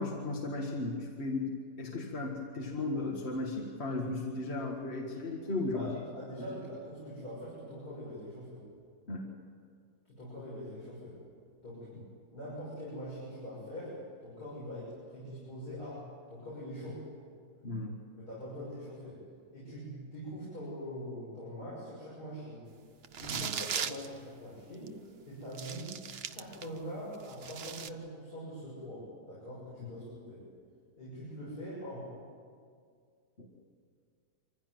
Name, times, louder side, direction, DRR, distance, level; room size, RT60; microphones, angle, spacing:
voice 1, 0.0-5.9 9.1-9.3 17.6-18.0 23.3-23.6 29.8-29.9 33.4-33.5, left 2 dB, 40° left, 0 dB, 2.0 m, -35 dB
voice 2, 5.4-8.6 10.1-11.2 11.6-11.9 12.3-17.1 18.2-19.3 19.5-22.6 23.2-26.0 26.3-30.4 30.9-32.1, equal, 70° left, -8 dB, 7.4 m, -43 dB
sound 1, 23.0-24.1 24.9-25.0 25.5-26.8 27.1-27.9, right 7 dB, 50° right, 0.8 m, -38 dB
25.0 x 16.0 x 9.4 m, 2.2 s
omnidirectional pair, 1.7 m